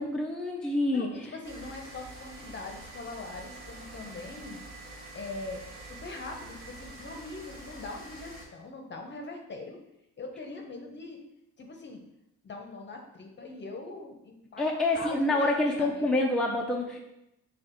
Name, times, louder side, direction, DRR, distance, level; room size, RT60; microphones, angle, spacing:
voice 1, 0.0-1.1 14.6-17.0, left 2 dB, ahead, -1 dB, 0.6 m, -27 dB
voice 2, 0.9-4.6 5.1-9.8 10.2-11.2 11.6-12.0 12.4-16.1, left 3 dB, 35° left, 3 dB, 0.9 m, -42 dB
sound 1, 1.4-8.5, right 2 dB, 45° right, 1.7 m, -46 dB
6.6 x 2.4 x 3.1 m, 0.85 s
cardioid pair, 90°, 30 cm